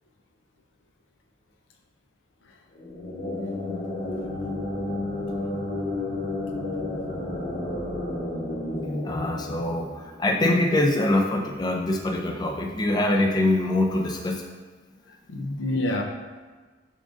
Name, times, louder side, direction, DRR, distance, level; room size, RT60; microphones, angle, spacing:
sound 1, 2.7-10.4, left 2 dB, 40° left, 0.8 m, -31 dB
voice 1, 9.0-14.4 15.3-15.5, left 1 dB, 20° left, 2 dB, 0.4 m, -24 dB
voice 2, 15.1-16.0, left 1 dB, 75° left, 2 dB, 0.5 m, -28 dB
5.1 x 3.6 x 2.5 m, 1.4 s
head